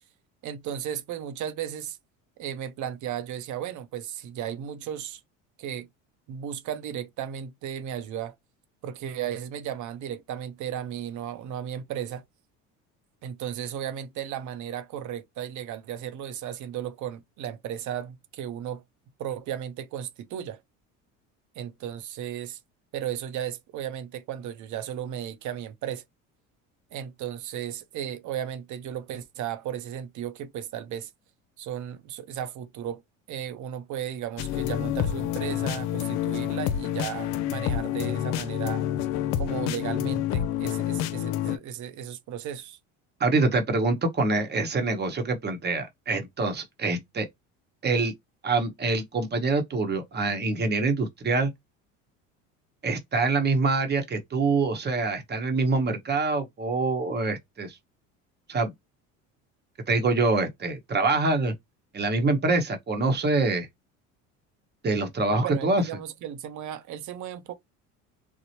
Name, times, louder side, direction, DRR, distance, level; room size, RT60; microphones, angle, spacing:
voice 1, 0.4-2.0 2.4-5.2 5.6-5.9 6.3-8.4 8.8-12.2 13.2-18.8 19.2-20.6 21.6-22.6 22.9-26.0 26.9-31.1 31.6-33.0 33.3-38.9 39.4-42.8 65.3-67.5, right 10 dB, 50° right, 0.6 m, -35 dB
sound 1, 34.4-41.6, left 11 dB, 75° left, 0.5 m, -28 dB
voice 2, 43.2-47.3 47.8-48.1 48.4-51.5 52.8-57.8 58.5-58.7 59.9-61.5 61.9-63.7 64.8-65.8, right 3 dB, 25° right, 0.9 m, -25 dB
3.0 x 2.1 x 2.8 m
supercardioid pair, 80°, 38 cm